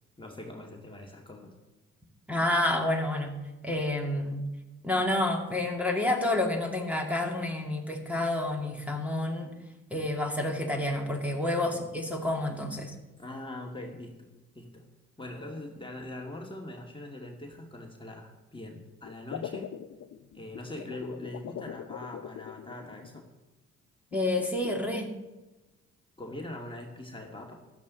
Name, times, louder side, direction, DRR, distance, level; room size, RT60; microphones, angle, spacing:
voice 1, 0.2-1.5 11.6-11.9 13.2-14.9 15.2-19.7 20.3-23.3 26.2-27.5, left 1 dB, 15° left, 0 dB, 2.4 m, -42 dB
voice 2, 2.3-3.4 3.6-4.4 4.8-9.5 9.9-12.9 24.1-25.2, left 1 dB, 5° right, 1 dB, 2.6 m, -29 dB
sound 1, 19.0-23.2 24.1-24.7, left 10 dB, 45° left, 0.8 m, -42 dB
15.5 x 11.5 x 4.1 m, 1.1 s
hypercardioid pair, 50°, 36 cm